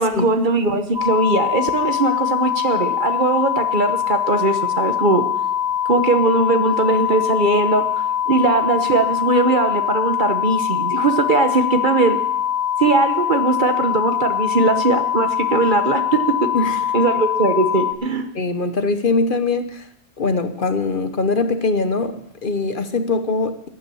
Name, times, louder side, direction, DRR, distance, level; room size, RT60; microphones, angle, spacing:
voice 1, 0.0-5.2 5.9-7.9 8.3-12.2 12.8-16.5 16.9-18.3, right 3 dB, 45° right, 7 dB, 1.1 m, -19 dB
sound 1, 0.9-17.9, left 10 dB, 65° right, 2.0 m, -22 dB
voice 2, 18.3-19.9 20.2-23.7, left 3 dB, 50° left, 9 dB, 1.0 m, -22 dB
15.0 x 9.0 x 7.0 m, 0.77 s
omnidirectional pair, 1.2 m